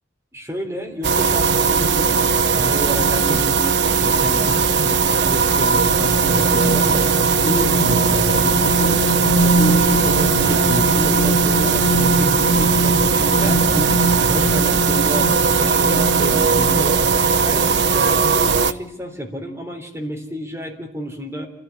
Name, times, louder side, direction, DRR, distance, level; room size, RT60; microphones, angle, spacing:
voice 1, 0.3-3.7 3.9-9.1 9.4-13.9 14.2-17.1 17.4-21.5, equal, 15° right, 1 dB, 3.8 m, -30 dB
sound 1, 1.0-18.7, right 5 dB, 70° right, 0.9 m, -18 dB
sound 2, 5.1-17.3 17.8-18.0, right 1 dB, 80° left, 2.6 m, -23 dB
28.0 x 13.5 x 10.0 m, 0.79 s
head